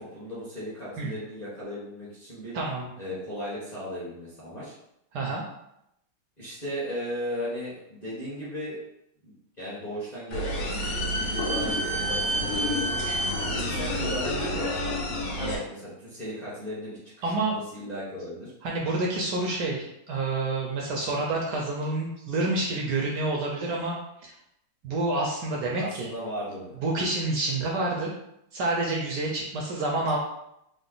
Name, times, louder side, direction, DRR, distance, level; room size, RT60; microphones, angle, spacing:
voice 1, 0.0-2.5 3.0-4.7 6.4-8.8 9.2-13.0 13.4-17.4 17.7-18.5 25.8-26.8, equal, 30° left, -9 dB, 0.9 m, -36 dB
voice 2, 2.5-2.9 5.1-5.4 17.2-17.6 18.6-24.3 24.8-26.1 26.8-28.1 28.5-30.2, right 2 dB, 75° right, -1 dB, 1.0 m, -28 dB
sound 1, 10.3-15.6, equal, 75° left, 1.5 m, -28 dB
3.8 x 2.1 x 3.8 m, 0.80 s
omnidirectional pair, 2.3 m